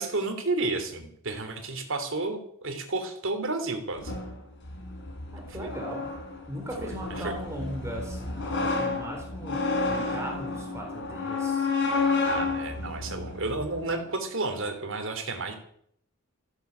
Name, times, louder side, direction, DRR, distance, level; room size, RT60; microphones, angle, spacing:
voice 1, 0.0-4.1 5.6-5.8 6.8-6.9 7.2-7.3 12.2-15.6, right 3 dB, 60° right, 5 dB, 3.2 m, -31 dB
sound 1, 4.0-13.9, left 3 dB, 55° left, 3.7 m, -31 dB
voice 2, 5.3-6.1 6.5-11.7, equal, 15° right, 0 dB, 3.8 m, -38 dB
15.0 x 10.5 x 8.2 m, 0.68 s
head